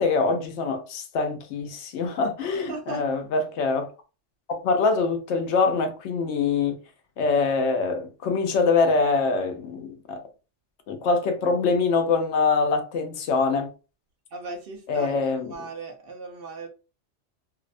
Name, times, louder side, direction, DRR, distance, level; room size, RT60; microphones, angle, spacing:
voice 1, 0.0-3.9 4.5-6.8 7.2-10.2 10.9-13.7 14.9-15.5, left 4 dB, 75° left, 0.9 m, -24 dB
voice 2, 2.6-3.1 14.3-16.7, right 3 dB, 60° right, 0.7 m, -37 dB
2.7 x 2.0 x 2.4 m
omnidirectional pair, 1.2 m